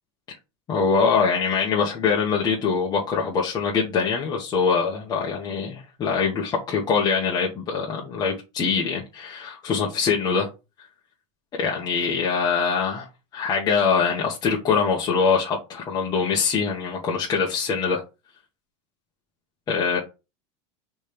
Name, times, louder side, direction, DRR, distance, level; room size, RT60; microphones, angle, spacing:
voice 1, 0.7-10.5 11.6-13.1 13.3-18.0 19.7-20.0, left 5 dB, 25° left, 1.4 m, -23 dB
5.2 x 3.4 x 5.3 m
supercardioid pair, 150°, 16 cm